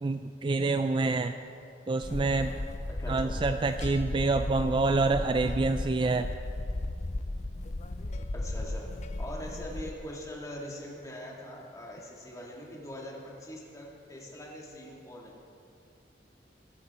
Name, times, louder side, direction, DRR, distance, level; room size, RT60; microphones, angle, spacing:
voice 1, 0.0-1.3 1.9-2.6 3.1-6.3, right 3 dB, 25° right, 8 dB, 0.3 m, -27 dB
sound 1, 2.0-9.9, left 2 dB, 40° left, 0.6 m, -35 dB
voice 2, 2.9-3.4 8.3-8.8 9.2-15.4, equal, 20° left, -3 dB, 2.2 m, -42 dB
21.0 x 9.1 x 4.3 m, 2.5 s
head